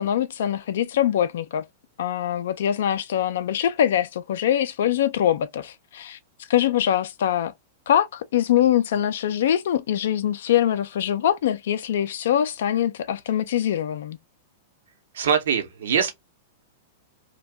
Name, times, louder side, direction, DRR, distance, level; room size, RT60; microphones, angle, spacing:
voice 1, 0.0-1.6 2.0-6.2 6.5-7.5 7.9-14.2, left 10 dB, 65° left, 0.4 m, -23 dB
voice 2, 15.1-16.1, right 7 dB, 70° right, 0.8 m, -22 dB
2.6 x 2.2 x 3.3 m
hypercardioid pair, 110°, 0 cm